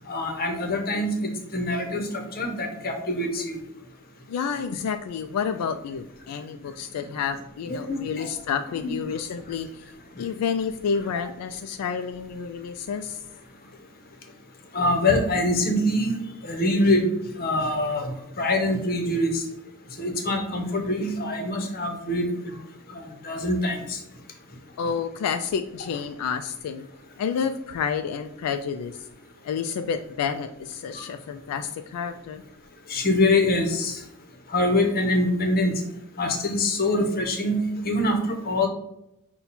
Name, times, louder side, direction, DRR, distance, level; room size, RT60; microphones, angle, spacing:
voice 1, 0.1-3.6 7.7-8.3 8.8-8.9 11.2-11.3 14.7-16.1 16.4-17.0 17.4-19.4 20.0-22.6 23.2-24.0 32.9-34.0 34.5-35.7 36.2-38.7, left 1 dB, 40° left, 4 dB, 0.8 m, -24 dB
voice 2, 4.3-9.8 10.2-13.2 24.8-26.9 27.2-29.1 29.4-32.4, left 6 dB, 85° left, 8 dB, 0.3 m, -29 dB
5.6 x 2.3 x 4.1 m, 0.81 s
head